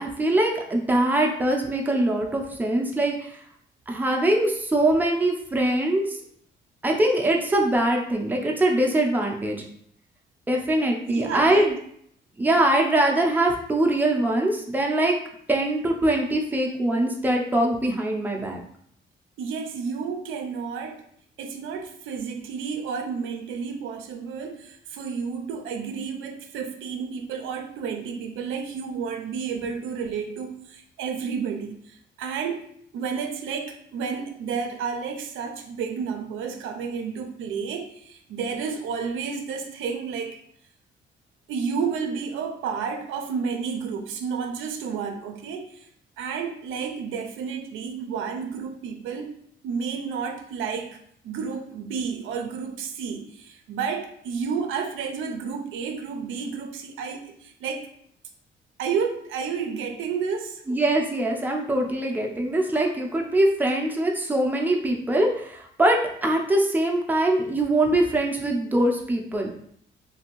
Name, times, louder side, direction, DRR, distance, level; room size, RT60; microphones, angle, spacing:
voice 1, 0.0-3.4 3.9-6.2 6.8-9.6 10.5-11.7 12.4-15.1 15.5-18.6 60.7-69.5, right 1 dB, 10° right, 0 dB, 0.5 m, -23 dB
voice 2, 11.1-11.7 19.4-21.0 21.4-32.6 32.9-40.4 41.5-45.9 46.2-49.3 49.6-51.0 51.2-57.9 58.8-60.6, right 6 dB, 80° right, 4 dB, 0.5 m, -31 dB
2.8 x 2.6 x 2.9 m, 0.66 s
cardioid pair, 90°, 20 cm